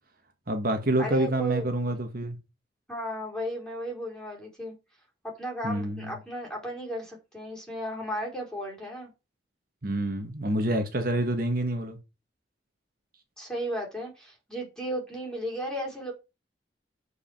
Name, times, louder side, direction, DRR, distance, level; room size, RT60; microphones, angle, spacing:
voice 1, 0.5-2.4 5.6-6.1 9.8-12.0, right 1 dB, 55° right, 1.5 m, -27 dB
voice 2, 1.0-1.6 2.9-4.7 5.4-9.1 13.4-16.1, equal, 5° left, 4.8 m, -34 dB
8.0 x 5.0 x 7.3 m
head